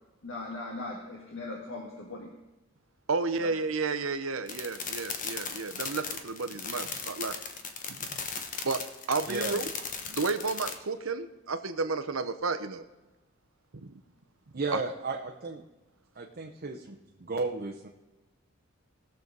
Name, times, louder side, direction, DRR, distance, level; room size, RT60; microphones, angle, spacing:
voice 1, 0.2-2.4 3.4-3.6, left 2 dB, 70° left, -1 dB, 1.7 m, -39 dB
voice 2, 3.1-7.3 8.6-8.8 9.1-9.6 10.1-12.8 14.7-14.8, right 4 dB, 85° right, 10 dB, 0.9 m, -31 dB
sound 1, 4.5-10.7, left 5 dB, 40° left, 1.2 m, -37 dB
voice 3, 9.2-9.6 14.5-15.6 16.2-17.9, right 3 dB, 45° right, 1 dB, 0.9 m, -34 dB
20.5 x 7.0 x 4.0 m, 1.1 s
head